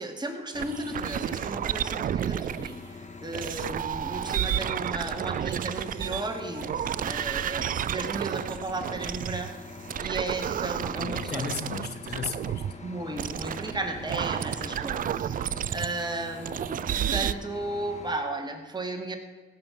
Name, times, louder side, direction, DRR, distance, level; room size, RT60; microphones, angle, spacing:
voice 1, 0.0-9.5 10.0-11.5 12.8-19.2, right 2 dB, 20° right, 4 dB, 2.1 m, -35 dB
sound 1, 0.5-18.2, left 3 dB, 35° left, 1.6 m, -44 dB
sound 2, 0.5-2.7 3.3-9.5 9.9-12.7 13.2-16.0 16.5-17.3, right 10 dB, 45° right, 0.4 m, -31 dB
voice 2, 11.0-12.6, left 6 dB, 55° left, 9 dB, 1.2 m, -35 dB
16.5 x 5.7 x 7.3 m, 1.4 s
cardioid pair, 90°, 20 cm